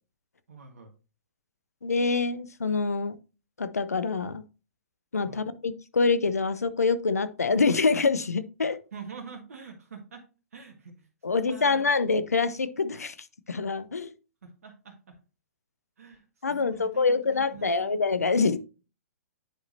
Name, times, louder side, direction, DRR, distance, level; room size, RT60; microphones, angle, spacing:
voice 1, 0.5-0.9 5.2-5.5 8.9-11.8 14.4-15.1 16.0-17.9, right 5 dB, 70° right, 2 dB, 1.6 m, -46 dB
voice 2, 1.8-3.2 3.6-4.4 5.1-8.8 11.2-14.1 16.4-18.6, left 4 dB, 85° left, 14 dB, 0.7 m, -26 dB
9.8 x 5.0 x 2.7 m, 0.33 s
hypercardioid pair, 120°, 8 cm